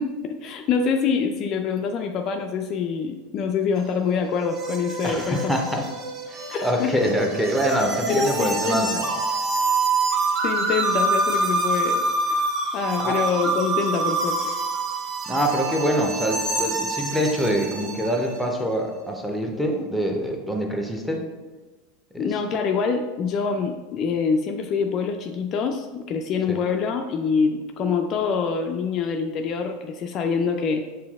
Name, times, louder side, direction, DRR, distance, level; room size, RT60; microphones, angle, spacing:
voice 1, 0.0-5.5 6.5-7.1 8.1-9.0 10.4-12.0 12.3-12.4 12.7-14.5 22.2-30.8, left 5 dB, 45° left, 5 dB, 0.3 m, -25 dB
sound 1, 3.8-18.4, right 3 dB, 35° right, 0.6 m, -26 dB
voice 2, 5.0-5.9 6.3-8.9 13.0-13.2 15.3-21.2 22.1-22.3 26.5-26.6, equal, ahead, 2 dB, 0.7 m, -25 dB
6.8 x 2.7 x 2.4 m, 1.3 s
figure-of-eight pair, 85°, 0 cm